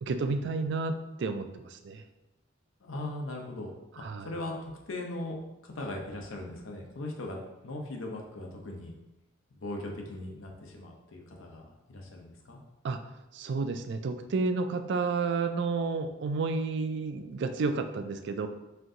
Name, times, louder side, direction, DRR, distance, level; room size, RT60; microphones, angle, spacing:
voice 1, 0.0-2.0 4.0-4.3 12.8-13.0 13.3-18.5, right 4 dB, 60° right, 8 dB, 0.3 m, -31 dB
voice 2, 2.8-7.4 7.6-8.9 9.5-12.6, left 1 dB, 85° left, 1 dB, 0.8 m, -39 dB
4.4 x 2.6 x 3.7 m, 0.98 s
head